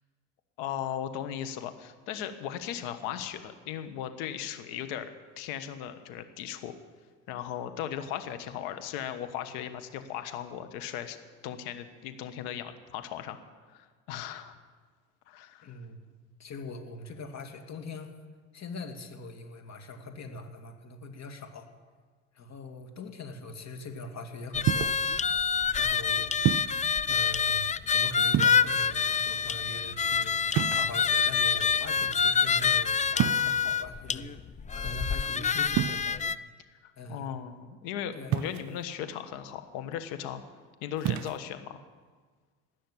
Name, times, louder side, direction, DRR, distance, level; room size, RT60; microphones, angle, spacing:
voice 1, 0.6-5.1 5.4-6.7 7.3-11.2 11.4-13.4 13.7-14.5 15.3-15.7 36.8-40.4 40.8-41.8, left 10 dB, 75° left, 9 dB, 1.4 m, -37 dB
voice 2, 15.6-16.0 16.4-18.1 18.5-21.7 22.3-24.9 25.7-26.3 26.8-27.7 27.9-30.3 30.7-36.2 37.0-37.3 38.1-38.3, left 2 dB, 45° left, 5 dB, 2.2 m, -42 dB
sound 1, 24.5-36.3, left 6 dB, 20° left, 0.5 m, -27 dB
sound 2, 24.7-25.1 26.4-26.9 28.3-28.9 30.5-31.3 33.1-33.7 35.7-36.0 38.3-38.8 41.0-41.4, right 13 dB, 50° right, 0.5 m, -29 dB
17.0 x 6.4 x 9.8 m, 1.5 s
hypercardioid pair, 70°, 38 cm